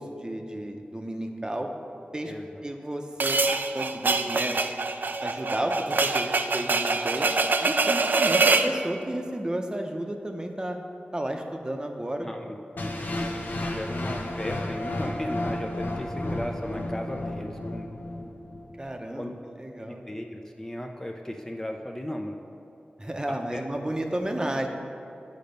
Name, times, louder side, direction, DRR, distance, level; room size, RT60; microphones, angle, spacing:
voice 1, 0.0-1.7 2.1-2.3 2.6-3.4 3.7-4.5 5.2-7.3 7.6-10.8 11.1-12.3 18.8-19.3 19.6-20.0 23.0-24.7, right 1 dB, 25° right, 3 dB, 0.7 m, -32 dB
voice 2, 2.3-2.6 12.2-17.9 19.1-19.4 19.8-22.4 23.3-23.6, left 1 dB, 15° left, 2 dB, 0.5 m, -36 dB
sound 1, 3.2-8.8, right 3 dB, 65° right, 0.4 m, -24 dB
sound 2, 12.8-18.8, left 1 dB, 70° left, 0.8 m, -32 dB
8.6 x 5.2 x 5.2 m, 2.7 s
wide cardioid pair, 60°, 3 cm